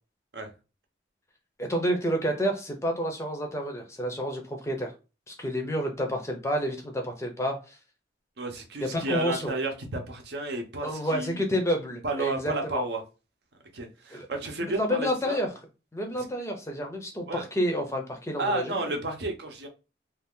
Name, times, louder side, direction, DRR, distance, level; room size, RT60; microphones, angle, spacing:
voice 1, 1.6-4.9 5.3-7.8 8.8-9.5 10.8-12.8 14.1-14.3 14.6-15.5 15.9-18.9, equal, 15° left, 0.5 m, -29 dB
voice 2, 8.4-11.4 12.0-13.0 13.7-15.4 16.1-16.2 17.3-17.4 18.4-19.7, right 2 dB, 60° right, 0.7 m, -32 dB
2.7 x 2.4 x 3.5 m
head